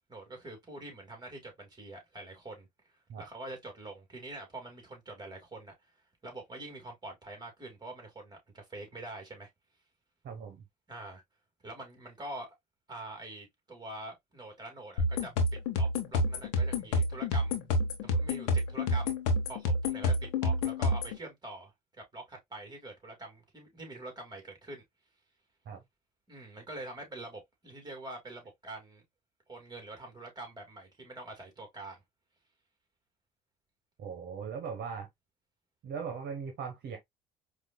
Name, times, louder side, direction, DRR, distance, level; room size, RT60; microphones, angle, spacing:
voice 1, 0.1-2.7 3.2-5.7 6.2-9.5 10.9-11.2 11.6-12.5 12.9-15.3 15.7-17.6 18.0-19.2 19.5-21.7 22.0-24.8 26.3-29.0 29.5-32.0, right 2 dB, 20° right, 2.2 m, -45 dB
voice 2, 10.2-10.6 25.7-25.8 34.0-35.1 35.8-37.0, right 6 dB, 60° right, 1.1 m, -39 dB
sound 1, 15.0-21.2, left 1 dB, 90° left, 0.9 m, -29 dB
4.8 x 2.6 x 2.2 m
supercardioid pair, 70°, 20 cm